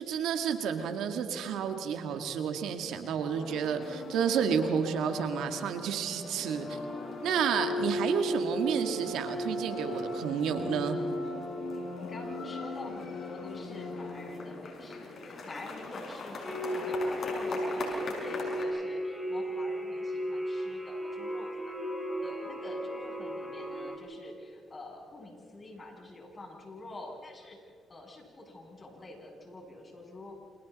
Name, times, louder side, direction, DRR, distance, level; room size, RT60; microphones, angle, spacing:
voice 1, 0.0-6.8 7.2-11.0, right 7 dB, 80° right, 6 dB, 2.0 m, -31 dB
sound 1, 3.3-18.6, left 1 dB, 60° left, 6.3 m, -37 dB
voice 2, 11.7-21.8 22.2-30.3, left 2 dB, 35° left, -1 dB, 7.8 m, -47 dB
sound 2, 16.4-24.0, equal, ahead, 4.6 m, -35 dB
29.0 x 28.0 x 4.2 m, 2.4 s
supercardioid pair, 70°, 0 cm